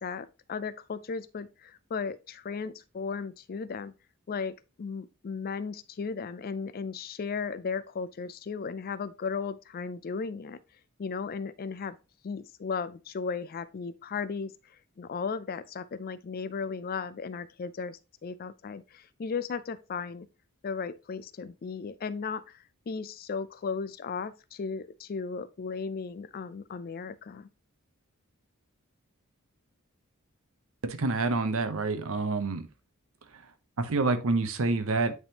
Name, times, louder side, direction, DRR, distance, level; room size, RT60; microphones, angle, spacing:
voice 1, 0.0-3.9 4.3-10.6 11.0-12.0 12.2-14.5 15.0-20.3 20.6-22.6 22.9-27.5, left 5 dB, 45° left, 0.4 m, -35 dB
voice 2, 30.8-32.7 33.8-35.1, right 3 dB, 65° right, 0.7 m, -27 dB
9.5 x 3.5 x 2.9 m
head